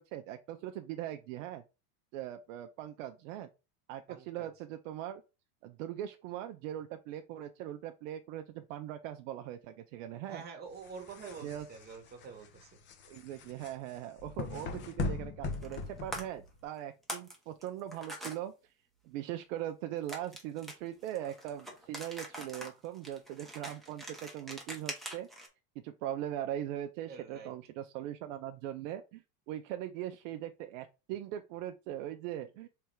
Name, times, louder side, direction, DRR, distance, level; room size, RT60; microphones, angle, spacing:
voice 1, 0.0-1.6 2.1-3.5 3.9-5.2 5.6-10.4 11.4-11.7 13.1-18.5 19.0-25.3 25.8-32.7, right 12 dB, 55° right, 0.5 m, -40 dB
voice 2, 4.1-4.5 10.3-12.7 27.1-27.5, right 5 dB, 20° right, 1.1 m, -47 dB
sound 1, 10.7-16.6, left 4 dB, 25° left, 0.5 m, -40 dB
sound 2, 15.5-15.9 16.1-16.2 16.8-17.4 17.6-18.4 20.1-25.5, right 1 dB, ahead, 0.8 m, -43 dB
3.4 x 3.3 x 4.5 m
supercardioid pair, 135°, 46 cm